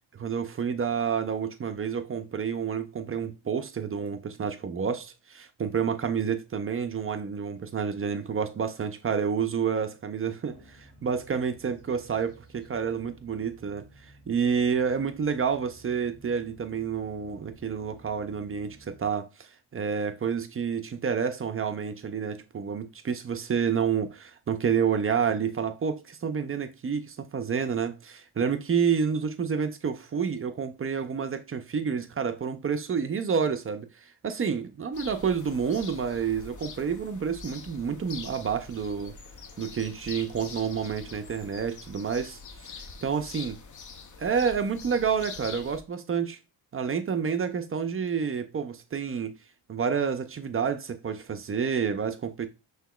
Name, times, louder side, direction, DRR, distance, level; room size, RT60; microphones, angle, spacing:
voice 1, 0.1-39.1 39.6-43.6 44.2-46.4 46.7-49.4 49.7-52.5, right 6 dB, 30° right, 0.4 m, -29 dB
sound 1, 10.5-19.1, right 1 dB, 20° left, 2.3 m, -55 dB
sound 2, 34.9-45.8, left 5 dB, 40° left, 0.6 m, -44 dB
5.6 x 2.9 x 2.3 m
cardioid pair, 110°, 48 cm